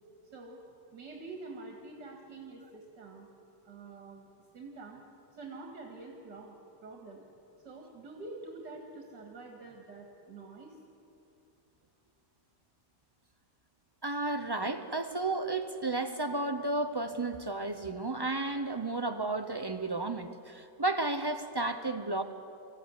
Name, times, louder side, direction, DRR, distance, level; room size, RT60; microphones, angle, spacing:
voice 1, 0.3-0.6 0.9-3.3 3.6-4.3 4.5-5.1 5.3-6.6 6.8-7.2 7.6-10.8, right 3 dB, 70° right, 1 dB, 2.7 m, -46 dB
voice 2, 14.0-22.2, right 2 dB, 35° right, 8 dB, 0.4 m, -32 dB
24.5 x 15.0 x 9.7 m, 2.6 s
omnidirectional pair, 1.9 m